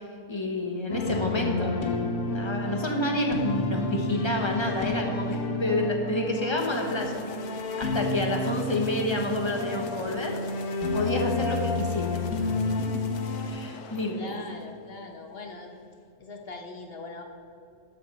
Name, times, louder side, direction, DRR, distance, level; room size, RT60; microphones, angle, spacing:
voice 1, 0.0-1.8 2.2-10.4 10.9-12.2 13.4-14.3, left 1 dB, 20° left, 2 dB, 1.2 m, -29 dB
sound 1, 0.9-13.5, left 2 dB, 70° left, 1.6 m, -30 dB
sound 2, 6.5-15.2, left 6 dB, 85° left, 1.3 m, -47 dB
voice 2, 14.1-15.7 16.2-17.2, left 3 dB, 40° left, 3 dB, 1.3 m, -41 dB
13.0 x 8.3 x 4.3 m, 2.4 s
omnidirectional pair, 1.6 m